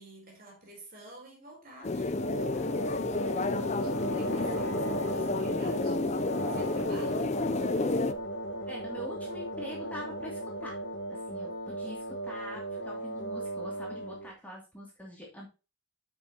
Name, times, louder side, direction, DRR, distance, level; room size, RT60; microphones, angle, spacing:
voice 1, 0.0-8.1, right 1 dB, 45° right, 4.0 m, -51 dB
sound 1, 1.8-8.1, left 3 dB, 35° left, 0.5 m, -31 dB
sound 2, 2.1-14.3, right 1 dB, 60° left, 1.3 m, -36 dB
voice 2, 8.7-10.8 11.1-15.5, left 1 dB, 10° left, 2.6 m, -44 dB
9.6 x 6.0 x 2.9 m
head